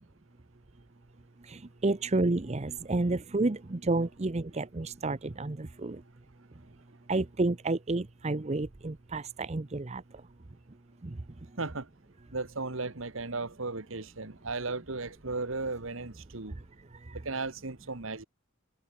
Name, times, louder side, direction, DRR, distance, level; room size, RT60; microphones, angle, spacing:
voice 1, 1.5-6.0 7.1-10.0 11.0-11.2, right 2 dB, 30° right, 0.7 m, -30 dB
voice 2, 11.6-11.9 12.3-16.5 17.3-18.2, right 3 dB, 70° right, 1.7 m, -35 dB
head